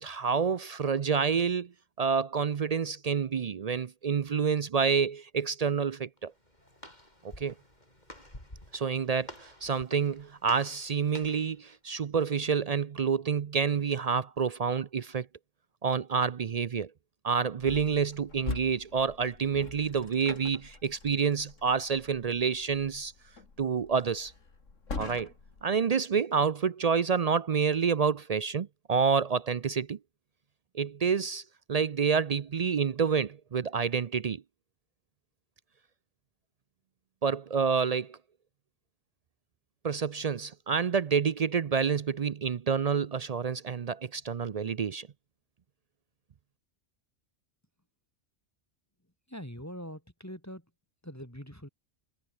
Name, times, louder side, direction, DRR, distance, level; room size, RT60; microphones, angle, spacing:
voice 1, 0.0-1.7 2.0-6.3 7.2-7.5 8.7-15.3 15.8-16.9 17.2-23.1 23.6-24.3 24.9-25.3 25.6-30.0 30.7-31.4 31.7-34.4 37.2-38.2 39.8-45.1, right 6 dB, 50° right, 0.4 m, -28 dB
Walk footsteps, 6.2-11.5, left 1 dB, 35° left, 8.4 m, -50 dB
sound 1, 17.6-25.7, left 4 dB, 90° left, 3.0 m, -43 dB
voice 2, 49.3-50.7 51.0-51.7, equal, 10° left, 4.6 m, -43 dB
omnidirectional pair, 1.3 m